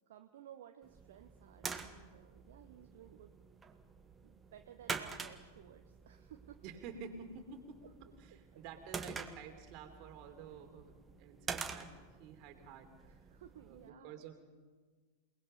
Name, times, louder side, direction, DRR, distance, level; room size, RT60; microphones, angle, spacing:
voice 1, 0.1-3.4 4.2-6.6 7.8-7.9 8.5-8.6 13.0-14.2, right 10 dB, 55° right, 6 dB, 1.2 m, -57 dB
sound 1, 0.8-13.9, right 5 dB, 15° right, 1.5 m, -47 dB
voice 2, 6.6-7.9 8.2-11.9 12.2-13.2 13.6-14.4, right 6 dB, 40° right, 5 dB, 3.3 m, -50 dB
28.5 x 20.0 x 5.4 m, 1.4 s
figure-of-eight pair, 90°, 0 cm